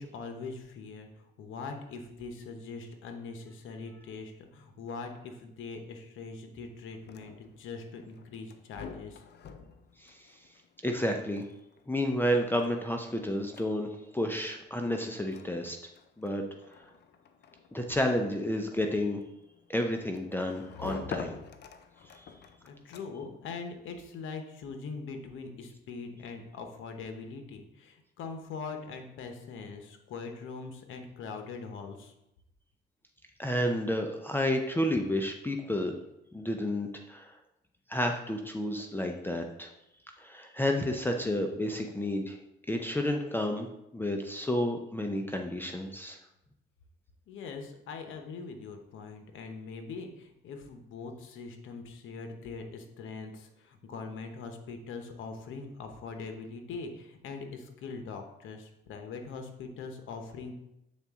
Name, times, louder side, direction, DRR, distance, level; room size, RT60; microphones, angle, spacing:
voice 1, 0.0-9.2 22.6-32.1 47.3-60.6, left 4 dB, 80° left, 5 dB, 0.9 m, -42 dB
sound 1, 6.9-23.4, left 6 dB, 60° left, 0.6 m, -48 dB
voice 2, 10.8-11.5 11.9-13.9 14.1-15.8 16.2-16.4 17.7-19.2 19.7-21.3 22.2-22.3 33.4-35.9 36.3-37.4 37.9-39.7 40.2-42.4 42.7-46.2, left 1 dB, 10° left, 3 dB, 0.6 m, -31 dB
7.4 x 4.0 x 3.6 m, 0.84 s
cardioid pair, 90°, 20 cm